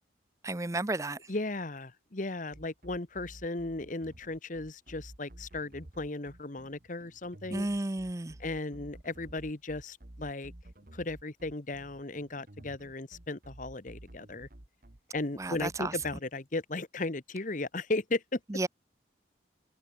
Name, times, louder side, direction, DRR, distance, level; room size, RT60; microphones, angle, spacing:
voice 1, 0.4-1.2 7.5-8.3 15.4-15.9 18.5-18.7, right 2 dB, 15° right, 0.6 m, -32 dB
voice 2, 1.3-7.7 8.4-10.5 10.9-14.5 15.1-18.4, left 2 dB, 45° left, 1.2 m, -36 dB
sound 1, 2.5-16.2, right 1 dB, 50° right, 1.6 m, -51 dB
head